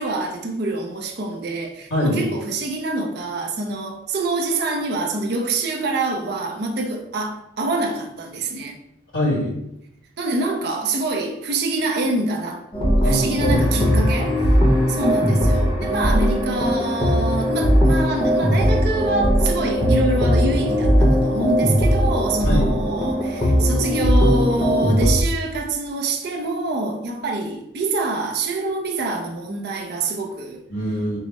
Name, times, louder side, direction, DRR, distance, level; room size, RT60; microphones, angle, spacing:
voice 1, 0.0-8.8 10.2-12.6 13.0-14.6 14.9-30.6, right 2 dB, 55° right, 0.5 m, -26 dB
voice 2, 1.9-2.2 9.1-9.6 13.0-13.6 22.4-22.7 30.7-31.2, equal, 80° left, 1.5 m, -23 dB
sound 1, 12.7-25.2, equal, 25° left, 0.8 m, -19 dB
4.8 x 2.0 x 3.9 m
head